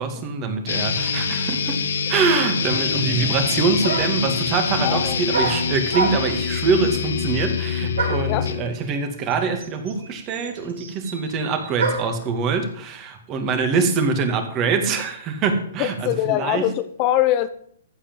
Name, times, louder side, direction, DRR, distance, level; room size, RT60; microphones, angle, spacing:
voice 1, 0.0-1.8 2.1-16.7, right 4 dB, 30° right, 2.3 m, -24 dB
sound 1, 0.7-8.7, left 6 dB, 75° left, 1.3 m, -25 dB
sound 2, 3.8-4.3 5.3-6.5 8.0-8.4 9.3-9.4 9.6-12.2, right 3 dB, 75° right, 4.8 m, -27 dB
voice 2, 4.8-5.1 8.3-8.5 15.8-17.5, left 13 dB, 35° left, 0.7 m, -22 dB
14.5 x 5.1 x 7.7 m
hypercardioid pair, 135°, 0 cm